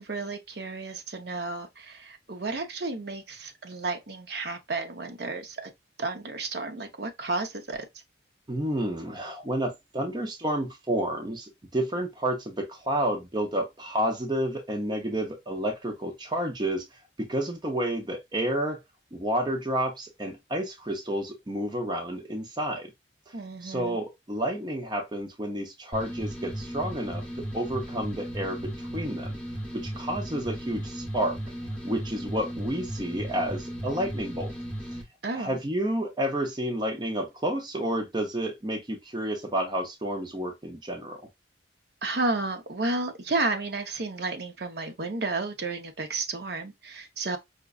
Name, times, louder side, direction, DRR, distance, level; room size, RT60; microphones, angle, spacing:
voice 1, 0.0-5.7 6.0-7.8 23.3-24.0 35.2-35.6 42.0-47.4, right 3 dB, 55° right, 0.7 m, -32 dB
voice 2, 8.5-18.8 19.1-22.9 23.3-23.4 23.6-29.3 29.7-31.4 31.8-34.5 34.9-35.0 35.3-41.2, right 1 dB, 20° right, 0.5 m, -30 dB
sound 1, 25.9-35.0, equal, 5° left, 1.0 m, -36 dB
5.0 x 2.2 x 2.3 m
head